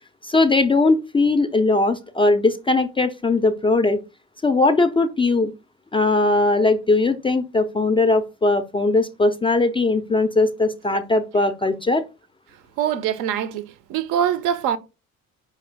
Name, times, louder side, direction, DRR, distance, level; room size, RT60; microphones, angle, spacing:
voice 1, 0.2-4.0 4.4-5.5 5.9-12.0, left 3 dB, 15° left, 0.4 m, -19 dB
voice 2, 12.8-14.8, right 9 dB, 55° right, 0.5 m, -23 dB
4.8 x 3.2 x 3.4 m
figure-of-eight pair, 45°, 40 cm